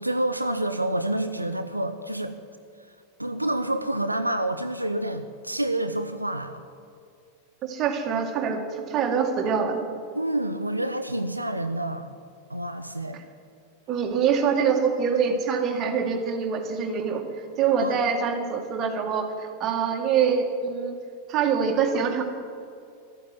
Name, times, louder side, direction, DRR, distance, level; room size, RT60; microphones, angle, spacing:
voice 1, 0.0-2.4 3.2-6.6 10.1-12.1 12.5-13.2 17.8-18.0, right 1 dB, 85° right, 8 dB, 0.6 m, -28 dB
voice 2, 7.6-9.8 13.1-13.2 13.9-17.2 17.6-21.0 21.3-22.2, right 6 dB, 30° right, 4 dB, 2.0 m, -25 dB
12.5 x 9.2 x 9.5 m, 2.3 s
figure-of-eight pair, 90°, 0 cm